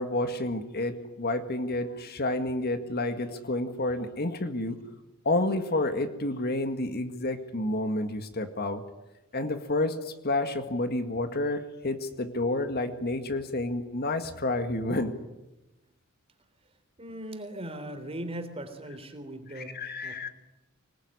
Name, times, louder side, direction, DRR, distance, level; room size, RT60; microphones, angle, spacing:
voice 1, 0.0-4.8 5.3-8.8 9.3-15.2 19.6-20.3, left 2 dB, 45° left, 8 dB, 1.9 m, -30 dB
voice 2, 17.0-20.3, right 1 dB, 25° right, 8 dB, 3.5 m, -39 dB
26.0 x 20.0 x 9.8 m, 1.0 s
head